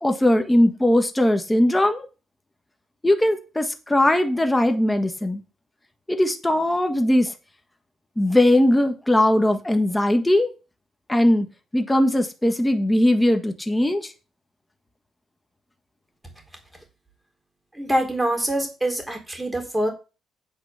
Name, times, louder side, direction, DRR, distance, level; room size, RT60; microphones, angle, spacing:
voice 1, 0.0-2.1 3.0-5.4 6.1-7.3 8.2-10.5 11.1-11.5 11.7-14.1, left 1 dB, 10° left, 1.5 m, -19 dB
voice 2, 17.7-19.9, right 1 dB, 10° right, 3.9 m, -24 dB
9.0 x 5.0 x 6.9 m
cardioid pair, 90°, 0 cm